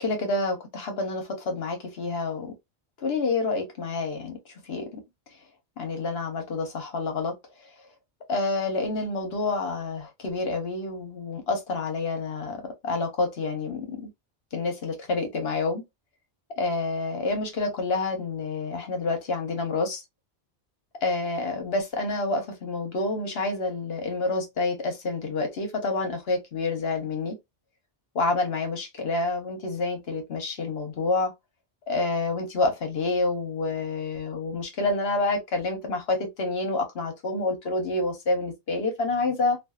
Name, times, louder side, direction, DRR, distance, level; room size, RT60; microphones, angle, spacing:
voice 1, 0.0-2.5 3.0-4.4 4.7-5.0 5.8-7.4 8.3-12.6 12.8-14.1 14.5-15.8 16.6-20.0 21.0-27.4 28.1-31.3 31.9-39.6, left 3 dB, 65° left, 1.1 m, -28 dB
2.5 x 2.4 x 2.3 m
omnidirectional pair, 1.1 m